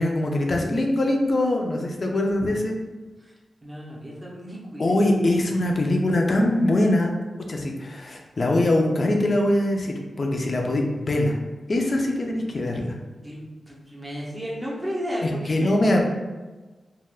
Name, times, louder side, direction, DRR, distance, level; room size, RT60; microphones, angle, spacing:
voice 1, 0.0-2.8 4.8-7.1 7.5-11.4 11.7-13.0 15.2-16.0, left 1 dB, 40° left, 1 dB, 0.4 m, -22 dB
voice 2, 3.6-5.0 13.2-15.7, equal, 15° right, -5 dB, 0.6 m, -33 dB
3.3 x 2.2 x 2.4 m, 1.3 s
wide cardioid pair, 155°, 0 cm